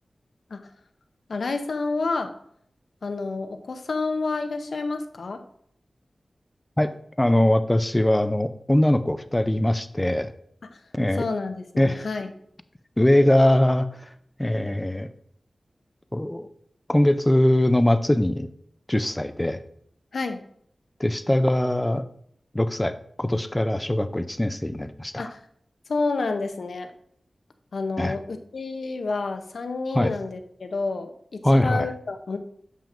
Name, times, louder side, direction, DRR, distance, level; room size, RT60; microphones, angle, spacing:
voice 1, 1.3-2.3 3.0-5.4 10.7-10.8 11.2-12.3 20.1-20.4 25.2-25.4 25.9-26.9 27.7-32.4, left 3 dB, 80° left, 7 dB, 0.6 m, -29 dB
voice 2, 6.8-10.3 10.9-11.3 11.8-12.1 13.0-13.9 14.4-15.1 16.1-16.5 16.9-18.5 18.9-19.6 21.0-22.1 22.5-25.1 28.0-28.1 29.9-30.1 31.4-31.9, left 1 dB, 15° left, 11 dB, 0.4 m, -21 dB
6.9 x 5.9 x 2.5 m, 0.67 s
wide cardioid pair, 90°, 0 cm